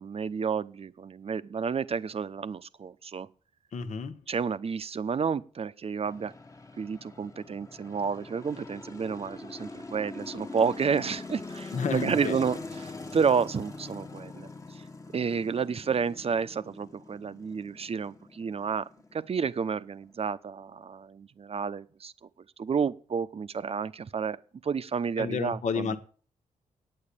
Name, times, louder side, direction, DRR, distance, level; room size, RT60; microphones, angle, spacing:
voice 1, 0.0-3.3 4.3-6.3 6.8-14.8 15.1-22.3 22.6-24.4 24.6-26.0, right 6 dB, 50° right, 0.8 m, -31 dB
voice 2, 3.7-4.2 11.7-12.4 25.2-26.0, left 5 dB, 65° left, 1.4 m, -31 dB
sound 1, 6.1-20.3, left 3 dB, 25° left, 1.4 m, -43 dB
8.9 x 8.7 x 8.4 m
cardioid pair, 65°, 13 cm